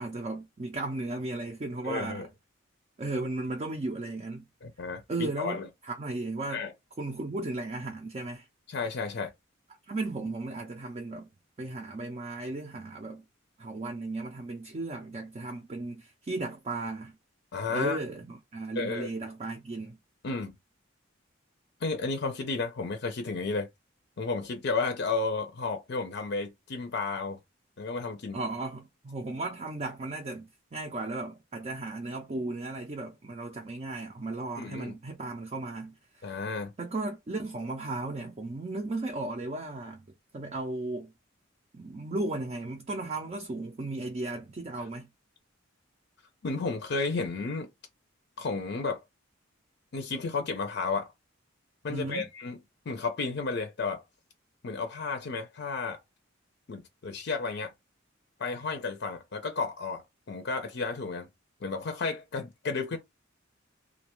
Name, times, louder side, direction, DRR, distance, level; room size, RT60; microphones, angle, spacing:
voice 1, 0.0-2.3 3.0-4.4 5.1-6.6 7.0-8.5 9.9-11.3 11.6-13.2 13.6-17.1 17.7-20.0 28.3-36.5 36.8-40.0 40.3-41.1 41.7-45.1 51.9-52.3, right 2 dB, 30° right, 0.4 m, -35 dB
voice 2, 1.8-2.3 4.6-5.7 6.5-6.7 8.7-9.3 17.5-18.0 18.8-19.1 20.2-20.5 21.8-23.7 24.2-27.4 27.8-28.4 34.6-35.0 36.2-36.7 46.4-47.7 48.4-49.0 49.9-51.1 51.8-52.6 52.9-54.0 54.6-56.0 56.7-57.7 58.4-60.0 60.3-61.3 61.6-63.0, left 4 dB, 55° left, 0.5 m, -32 dB
2.4 x 2.2 x 2.9 m
head